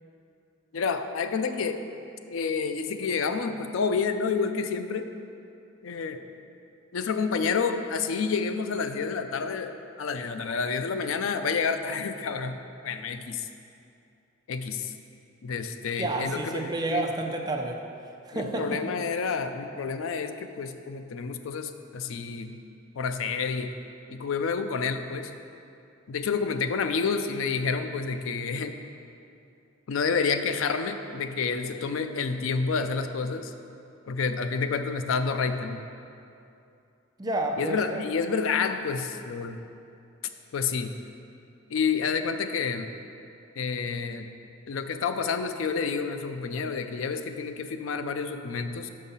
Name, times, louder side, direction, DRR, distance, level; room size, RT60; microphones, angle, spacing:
voice 1, 0.7-1.8 2.3-5.1 5.8-6.3 6.9-13.5 14.5-14.9 15.4-17.0 18.3-22.6 23.0-23.7 24.1-25.3 26.1-28.7 29.9-33.5 34.1-35.9 37.6-39.6 40.5-41.0 41.7-42.9 43.6-44.3 44.7-48.9, left 5 dB, 80° left, 8 dB, 0.4 m, -29 dB
voice 2, 16.0-17.8 18.2-18.8 37.2-38.0, right 2 dB, 20° right, 2 dB, 0.4 m, -30 dB
6.3 x 5.5 x 5.5 m, 2.6 s
head